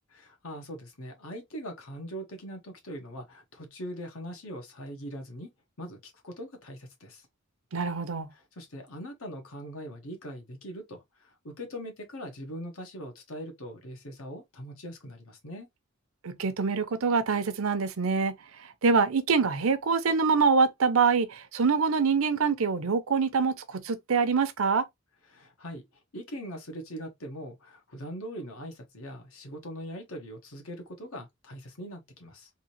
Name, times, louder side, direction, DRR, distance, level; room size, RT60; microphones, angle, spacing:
voice 1, 0.1-5.5 5.8-7.3 8.3-15.7 25.3-25.8 26.1-32.5, equal, 85° left, 1.3 m, -41 dB
voice 2, 7.7-8.3 16.2-18.3 18.6-24.9, right 5 dB, 85° right, 0.7 m, -25 dB
3.7 x 2.8 x 2.9 m
head